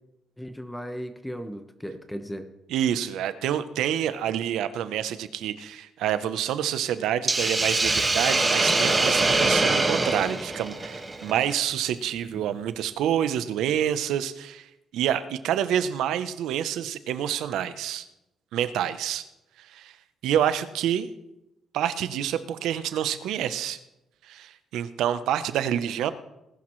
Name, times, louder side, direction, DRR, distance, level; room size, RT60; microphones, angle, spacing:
voice 1, 0.4-2.5, equal, 5° left, 7 dB, 1.2 m, -36 dB
voice 2, 2.7-14.7 14.9-18.1 18.5-19.3 19.7-19.9 20.2-21.1 21.7-23.8 24.3-26.1, right 10 dB, 85° right, 12 dB, 0.8 m, -27 dB
Hiss, 7.3-11.5, right 2 dB, 20° right, 1.7 m, -23 dB
19.5 x 11.5 x 3.2 m, 0.92 s
cardioid pair, 90°, 0 cm